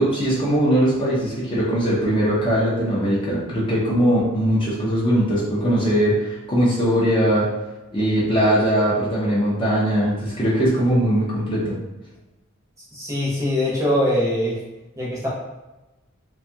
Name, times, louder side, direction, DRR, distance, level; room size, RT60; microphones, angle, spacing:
voice 1, 0.0-7.5 7.9-11.8, equal, 25° left, -7 dB, 0.5 m, -20 dB
voice 2, 12.9-14.6 15.0-15.3, left 1 dB, 15° right, -6 dB, 0.7 m, -22 dB
2.6 x 2.3 x 2.6 m, 1.0 s
head